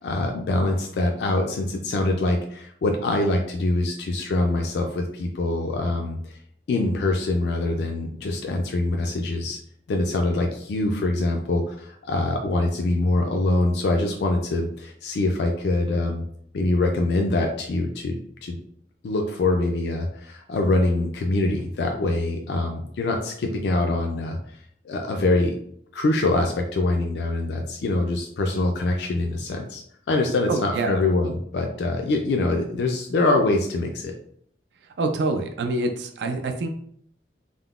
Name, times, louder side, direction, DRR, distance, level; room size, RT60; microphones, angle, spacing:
voice 1, 0.0-6.3 6.7-9.6 9.9-16.2 16.5-18.6 19.0-24.4 24.8-25.6 25.9-29.8 30.1-34.1, left 2 dB, 70° left, 2 dB, 0.3 m, -24 dB
voice 2, 30.5-31.0 35.0-36.7, right 2 dB, 75° right, 5 dB, 0.3 m, -26 dB
3.6 x 2.1 x 2.3 m, 0.65 s
head